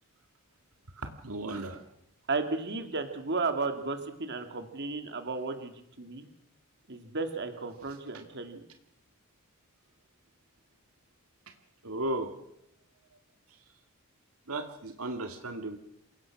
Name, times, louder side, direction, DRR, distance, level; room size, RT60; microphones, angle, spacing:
voice 1, 1.0-1.8 11.8-12.3 14.5-15.8, right 2 dB, 80° right, 6 dB, 1.9 m, -35 dB
voice 2, 2.3-5.7 6.0-6.3 6.9-8.6, right 3 dB, 55° right, 7 dB, 2.4 m, -33 dB
27.5 x 17.0 x 6.0 m, 0.76 s
head